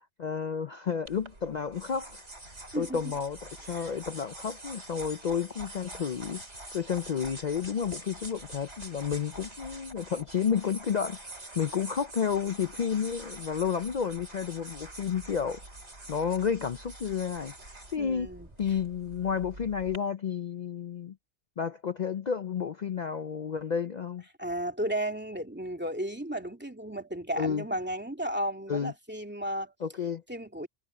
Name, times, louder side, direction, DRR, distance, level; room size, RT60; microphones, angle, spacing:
voice 1, 0.2-2.2 2.7-6.4 6.7-15.6 16.1-17.5 17.9-18.3 18.6-21.1 21.6-24.2 27.4-27.6 28.7-28.9 29.8-30.2, left 7 dB, 60° left, 0.4 m, -31 dB
sound 1, 1.1-20.0, right 1 dB, 60° right, 5.9 m, -46 dB
voice 2, 18.0-18.5 24.4-29.7 30.3-30.7, right 1 dB, 10° right, 2.6 m, -34 dB
omnidirectional pair, 1.4 m